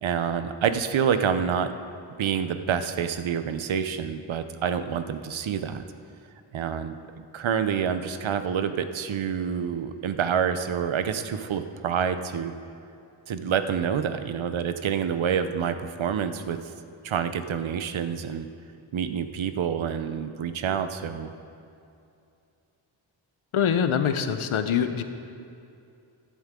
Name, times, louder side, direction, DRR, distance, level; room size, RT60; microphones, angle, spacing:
voice 1, 0.0-1.7 2.2-5.8 6.5-12.5 13.3-16.6 17.0-18.5 18.9-21.3, right 7 dB, 70° right, 10 dB, 0.8 m, -27 dB
voice 2, 23.5-25.0, left 7 dB, 80° left, 9 dB, 0.9 m, -24 dB
15.5 x 11.0 x 3.7 m, 2.6 s
wide cardioid pair, 145°, 48 cm